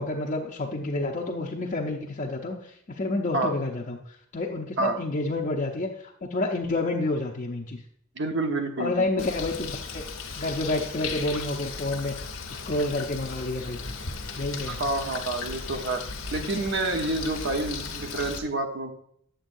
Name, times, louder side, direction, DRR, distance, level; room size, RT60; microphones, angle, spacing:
voice 1, 0.0-7.8 8.8-10.0 10.4-12.1 12.5-13.8 14.4-14.8, left 2 dB, 40° left, -2 dB, 0.6 m, -29 dB
voice 2, 8.1-9.3 14.7-16.0 16.3-18.9, right 2 dB, 60° right, 4 dB, 1.0 m, -28 dB
Bird, 9.2-18.4, left 4 dB, 80° left, 1.0 m, -36 dB
8.9 x 7.3 x 2.6 m, 0.68 s
head